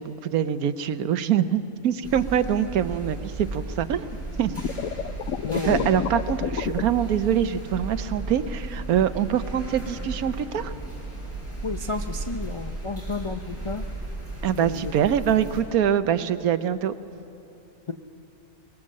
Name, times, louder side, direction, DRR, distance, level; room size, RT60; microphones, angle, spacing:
voice 1, 0.0-4.5 5.6-10.7 14.4-16.9, right 9 dB, 85° right, 12 dB, 1.3 m, -24 dB
sound 1, 2.0-15.6, right 2 dB, 10° left, 7.9 m, -35 dB
sound 2, 4.6-6.8, left 9 dB, 70° left, 1.0 m, -29 dB
voice 2, 5.4-6.2 11.6-13.8 14.6-14.9 17.9-18.0, left 4 dB, 45° left, 5 dB, 0.3 m, -32 dB
23.5 x 21.0 x 7.5 m, 2.7 s
omnidirectional pair, 1.5 m